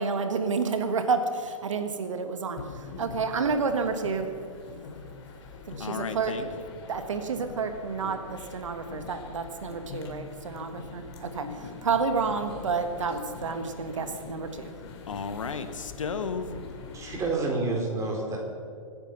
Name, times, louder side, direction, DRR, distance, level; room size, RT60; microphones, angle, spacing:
voice 1, 0.0-2.6 3.0-4.3 5.7-6.6 6.9-11.5 11.8-14.7, right 5 dB, 65° right, 7 dB, 1.5 m, -29 dB
sound 1, 2.5-17.4, left 5 dB, 50° left, 2.4 m, -43 dB
voice 2, 5.8-6.6 15.1-16.6, left 5 dB, 70° left, 10 dB, 1.3 m, -33 dB
voice 3, 16.9-18.4, right 3 dB, 20° right, 0 dB, 3.8 m, -29 dB
23.5 x 9.8 x 5.9 m, 2.2 s
figure-of-eight pair, 115°, 17 cm